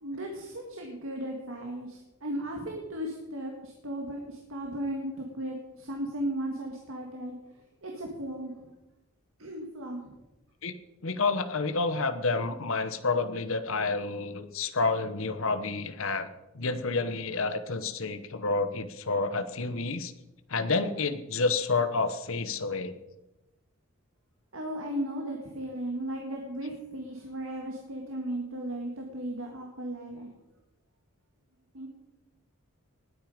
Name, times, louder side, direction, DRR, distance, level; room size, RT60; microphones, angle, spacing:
voice 1, 0.0-7.4 7.8-8.7 9.4-10.1 24.5-30.3 31.7-31.9, right 1 dB, 65° right, 1 dB, 1.9 m, -36 dB
voice 2, 11.0-16.3 16.5-20.1 20.5-22.9, left 3 dB, 65° left, 10 dB, 1.0 m, -29 dB
19.0 x 9.3 x 5.1 m, 1.0 s
head